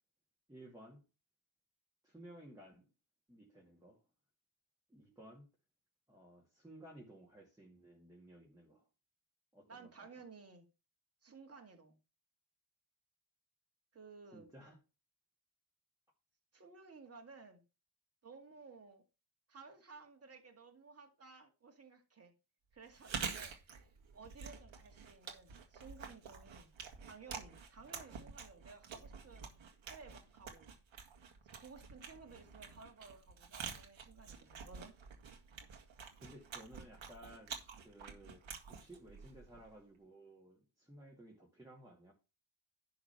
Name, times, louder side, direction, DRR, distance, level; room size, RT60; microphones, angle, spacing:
voice 1, 0.5-1.0 2.0-2.9 3.3-4.0 4.9-5.5 6.1-8.9 9.5-10.1 14.3-14.8 36.2-42.1, right 1 dB, 5° right, 2.3 m, -57 dB
voice 2, 9.7-10.7 11.2-12.0 13.9-14.5 16.5-17.6 18.2-19.0 19.5-22.3 22.7-23.9 24.1-26.7 27.0-29.5 29.9-30.7 31.6-35.0, right 4 dB, 30° right, 2.2 m, -56 dB
Chewing mastication, 22.9-39.8, right 6 dB, 75° right, 2.1 m, -48 dB
11.5 x 3.9 x 5.8 m
wide cardioid pair, 135°, 47 cm